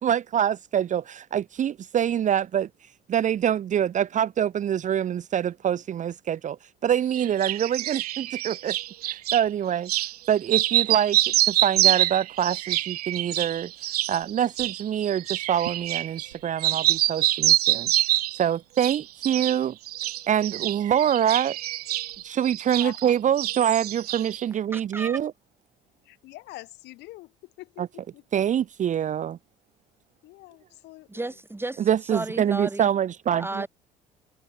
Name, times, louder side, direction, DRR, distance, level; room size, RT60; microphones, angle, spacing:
voice 1, 0.0-2.7 3.1-6.6 6.8-8.8 9.0-9.9 10.3-13.7 14.1-17.9 18.4-19.7 20.3-21.6 22.2-25.3 27.8-27.9 28.3-29.4 31.9-33.6, right 9 dB, 40° right, 1.0 m, -25 dB
sound 1, 7.1-9.4 9.9-10.1 10.4-16.3 16.6-18.4 18.8-19.6 19.9-23.1 23.4-24.4, right 15 dB, 80° right, 0.8 m, -26 dB
voice 2, 24.7-25.2 31.1-32.9 33.4-33.7, right 2 dB, 10° right, 6.3 m, -33 dB
voice 3, 26.0-28.2 30.2-31.3, left 19 dB, 60° left, 3.2 m, -44 dB
figure-of-eight pair, 60°, 19 cm